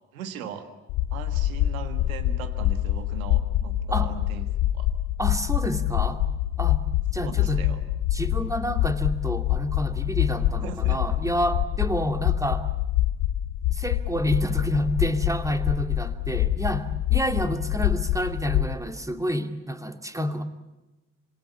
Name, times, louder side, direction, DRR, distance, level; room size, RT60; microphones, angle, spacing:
voice 1, 0.1-0.7 1.1-4.5 4.7-4.9 7.2-7.8 10.6-11.0, right 8 dB, 80° right, 10 dB, 1.6 m, -39 dB
sound 1, 0.9-18.7, left 13 dB, 65° left, 1.0 m, -26 dB
voice 2, 5.2-6.2 6.6-6.8 7.1-7.6 8.1-12.7 13.7-20.4, equal, 10° right, 8 dB, 2.6 m, -28 dB
26.0 x 23.0 x 8.6 m, 1.0 s
figure-of-eight pair, 45°, 41 cm